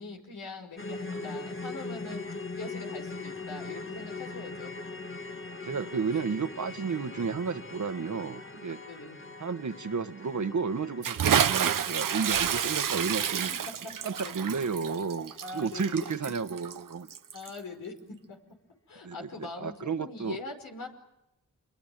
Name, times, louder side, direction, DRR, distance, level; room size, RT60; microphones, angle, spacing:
voice 1, 0.0-2.2 2.6-4.7 8.4-8.5 8.9-9.2 14.0-14.5 15.4-16.0 16.5-16.6 17.3-18.4 18.9-20.9, left 3 dB, 90° left, 3 dB, 5.2 m, -42 dB
sound 1, 0.8-15.0 15.2-15.4 15.9-16.0, left 3 dB, 40° left, 1.8 m, -41 dB
voice 2, 5.6-8.8 9.4-13.5 14.0-17.1 19.0-20.4, right 5 dB, 65° right, 10 dB, 1.6 m, -32 dB
Bathtub (filling or washing) / Splash splatter, 11.0-17.6, right 8 dB, 85° right, 0.9 m, -29 dB
28.0 x 22.5 x 9.2 m, 0.92 s
cardioid pair, 50°, 32 cm